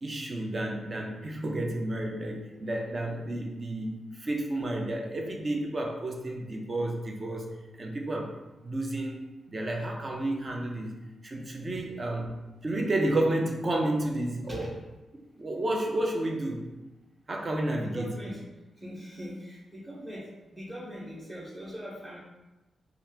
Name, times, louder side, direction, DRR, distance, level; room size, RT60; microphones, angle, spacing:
voice 1, 0.0-8.3 8.6-10.9 11.2-12.3 12.6-14.8 15.4-16.7 17.3-18.1, right 1 dB, 35° right, 1 dB, 0.5 m, -31 dB
voice 2, 17.7-18.4 18.8-22.2, equal, 20° right, -5 dB, 1.0 m, -41 dB
2.8 x 2.4 x 3.4 m, 1.1 s
wide cardioid pair, 120°, 0 cm